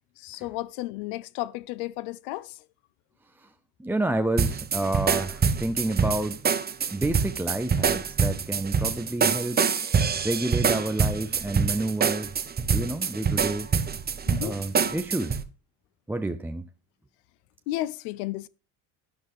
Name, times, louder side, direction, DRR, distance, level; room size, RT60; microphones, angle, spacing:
voice 1, 0.2-2.6 14.3-14.6 17.7-18.5, left 16 dB, 70° left, 0.7 m, -33 dB
voice 2, 3.8-6.4 6.9-9.6 10.2-12.3 12.7-13.7 14.4-15.4 16.1-16.7, right 1 dB, 5° right, 0.5 m, -29 dB
sound 1, 4.4-15.4, right 6 dB, 20° right, 1.0 m, -25 dB
11.5 x 11.0 x 3.5 m
supercardioid pair, 95°, 44 cm